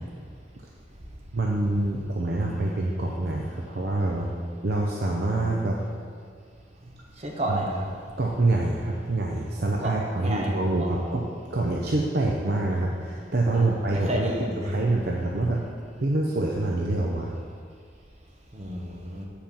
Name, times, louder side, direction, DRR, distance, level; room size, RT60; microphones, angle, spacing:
voice 1, 1.3-4.3 4.6-5.8 7.5-7.6 8.2-11.2 11.5-14.3 14.6-15.6 16.0-17.3, right 2 dB, 55° right, -1 dB, 0.6 m, -26 dB
voice 2, 7.2-7.8 9.8-10.9 13.5-14.7 18.5-19.3, right 1 dB, 35° right, -1 dB, 1.2 m, -31 dB
7.5 x 4.4 x 7.0 m, 2.1 s
head